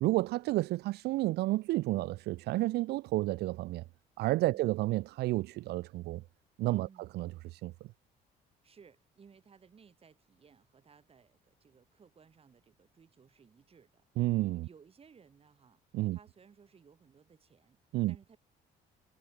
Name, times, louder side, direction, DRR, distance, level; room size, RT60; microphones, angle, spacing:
voice 1, 0.0-3.8 4.2-6.2 6.6-7.9 14.2-14.7 15.9-16.2 17.9-18.1, right 18 dB, 75° right, 0.6 m, -31 dB
voice 2, 8.6-14.0 14.6-15.8 16.1-17.8 18.1-18.4, right 6 dB, 35° right, 6.9 m, -60 dB
cardioid pair, 110°, 17 cm